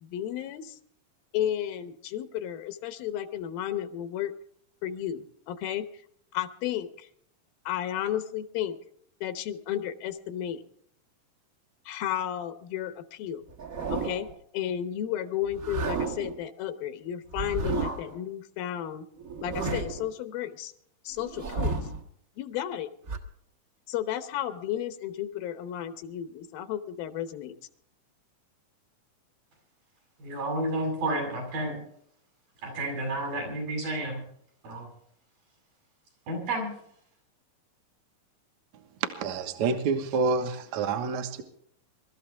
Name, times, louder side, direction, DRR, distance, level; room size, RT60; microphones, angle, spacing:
voice 1, 0.0-0.8 1.3-4.3 4.8-5.9 6.3-7.1 7.7-8.8 9.2-10.6 11.9-13.4 13.9-14.3 14.5-19.1 19.4-20.7 21.0-21.7 22.4-22.9 23.9-27.5, left 11 dB, 85° left, 10 dB, 2.8 m, -33 dB
sound 1, 13.5-14.4 15.5-16.4 17.3-18.2 19.2-20.1 21.2-22.0 23.1-23.2, right 3 dB, 45° right, 1.2 m, -32 dB
voice 2, 30.2-31.8 32.6-34.2 34.6-34.9 36.3-36.8, right 1 dB, 80° right, 0 dB, 8.9 m, -31 dB
voice 3, 39.0-41.4, right 5 dB, 60° right, 6 dB, 2.3 m, -28 dB
24.0 x 13.5 x 3.5 m, 0.67 s
omnidirectional pair, 4.1 m